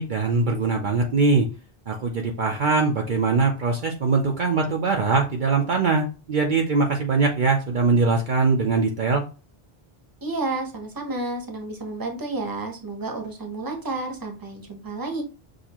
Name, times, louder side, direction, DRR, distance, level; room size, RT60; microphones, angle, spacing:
voice 1, 0.0-1.5 1.9-9.2, right 4 dB, 55° right, 2 dB, 0.8 m, -22 dB
voice 2, 10.2-15.2, right 2 dB, 20° right, 3 dB, 0.9 m, -31 dB
6.4 x 2.6 x 2.9 m, 0.32 s
omnidirectional pair, 1.0 m